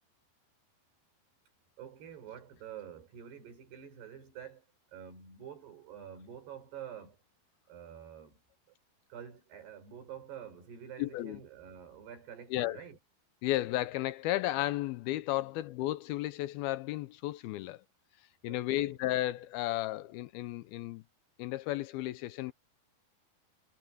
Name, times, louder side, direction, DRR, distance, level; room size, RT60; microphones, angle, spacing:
voice 1, 1.8-7.2 7.7-8.4 9.1-13.0 15.4-15.5 18.5-19.0, right 9 dB, 80° right, 6.9 m, -48 dB
voice 2, 11.0-11.4 12.5-12.8 13.4-17.8 18.4-21.0 21.4-22.5, left 16 dB, 80° left, 2.4 m, -33 dB
omnidirectional pair, 4.6 m